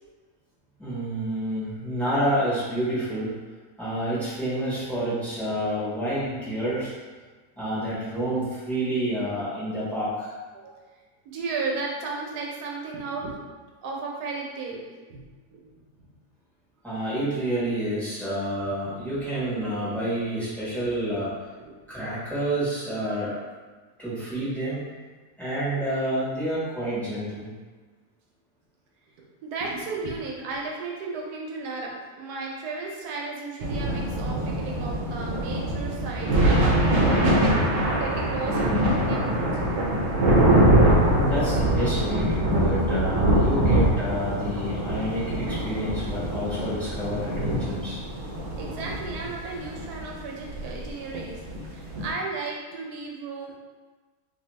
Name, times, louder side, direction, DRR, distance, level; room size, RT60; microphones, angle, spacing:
voice 1, 0.8-3.3 3.8-6.9 7.6-10.3 16.8-21.3 21.9-23.4 24.0-24.8 25.4-27.5 41.2-48.0, right 1 dB, ahead, -11 dB, 1.0 m, -29 dB
voice 2, 11.2-13.4 13.8-14.8 15.1-15.2 15.5-15.7 15.9-16.1 21.6-21.7 29.4-37.0 37.3-37.6 37.9-39.5 48.6-53.6, right 4 dB, 90° right, -1 dB, 1.2 m, -34 dB
sound 1, 33.6-52.1, right 1 dB, 65° right, 0.9 m, -23 dB
2.6 x 2.6 x 3.1 m, 1.3 s
omnidirectional pair, 1.6 m